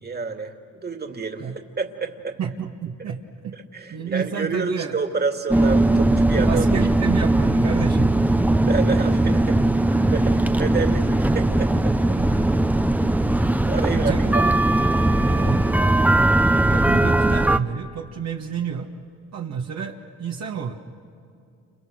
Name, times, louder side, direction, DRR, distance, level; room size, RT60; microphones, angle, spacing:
voice 1, 0.0-1.5 1.8-2.4 3.7-6.7 8.7-9.6 10.1-12.2 13.3-14.5 15.0-15.6 16.1-16.3, right 4 dB, 35° right, 5 dB, 2.6 m, -29 dB
voice 2, 2.4-3.5 3.9-5.0 6.5-8.4 13.8-14.6 15.2-15.7 16.7-18.9 19.3-20.7, right 7 dB, 60° right, 0 dB, 1.9 m, -30 dB
sound 1, 5.5-17.6, right 1 dB, 5° right, 0.8 m, -19 dB
30.0 x 29.5 x 6.4 m, 2.4 s
cardioid pair, 90°, 30 cm